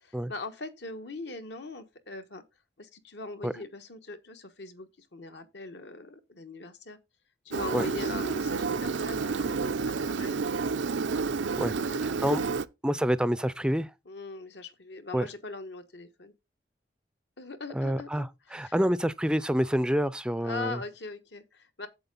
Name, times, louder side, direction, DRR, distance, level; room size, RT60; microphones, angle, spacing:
voice 1, 0.0-2.4 2.8-7.0 7.4-10.4 11.6-12.0 14.0-16.3 17.4-18.8 20.4-21.9, left 3 dB, 70° left, 1.2 m, -41 dB
Engine, 7.5-12.7, right 4 dB, 80° right, 0.5 m, -30 dB
voice 2, 12.0-12.4 12.8-13.9 15.1-15.2 17.8-18.3 18.5-20.8, equal, 5° right, 0.4 m, -27 dB
8.0 x 7.6 x 3.9 m
head